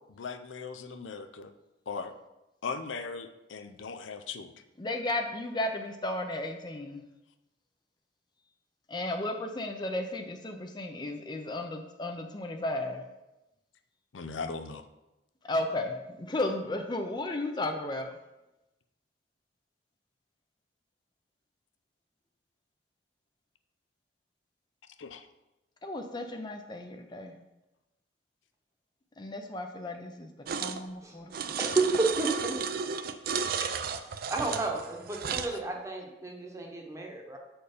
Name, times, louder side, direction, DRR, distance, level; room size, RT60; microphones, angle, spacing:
voice 1, 0.0-1.5 1.9-2.1 2.6-4.5 14.1-14.8 25.0-25.3 33.3-33.7, left 4 dB, 90° left, 8 dB, 0.5 m, -39 dB
voice 2, 4.8-7.0 8.9-13.0 15.5-18.1 25.8-27.3 29.2-30.3 30.6-31.3, left 1 dB, 25° left, 5 dB, 0.5 m, -34 dB
sound 1, 30.5-30.8 31.3-35.6, right 6 dB, 50° right, 0.4 m, -33 dB
voice 3, 31.6-32.6 34.3-37.4, right 3 dB, 15° right, 0 dB, 1.0 m, -31 dB
6.7 x 4.4 x 5.0 m, 0.97 s
head